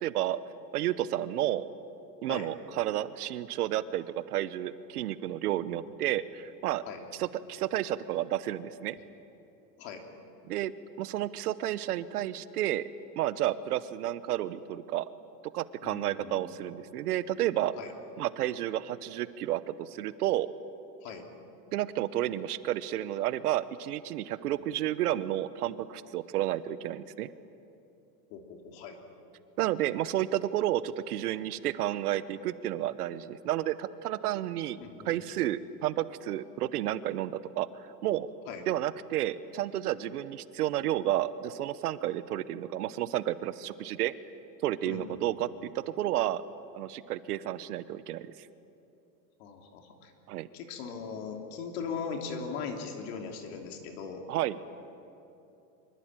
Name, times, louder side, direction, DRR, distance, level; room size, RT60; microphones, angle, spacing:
voice 1, 0.0-0.4 0.7-1.6 2.2-6.8 7.1-9.0 10.5-10.7 11.0-12.8 13.2-15.1 15.5-17.7 18.2-20.5 21.7-27.3 29.6-34.8 35.0-37.7 38.0-38.3 38.7-44.1 44.6-46.4 46.7-48.5 50.3-50.5 54.3-54.6, right 13 dB, 65° right, 15 dB, 1.0 m, -31 dB
voice 2, 15.8-16.6 17.8-17.9 21.0-21.3 28.3-29.0 34.8-35.1 38.5-38.7 44.8-45.3 49.4-50.1 50.5-54.2, left 5 dB, 40° left, 3 dB, 3.0 m, -39 dB
25.0 x 23.5 x 8.9 m, 2.8 s
supercardioid pair, 180°, 49 cm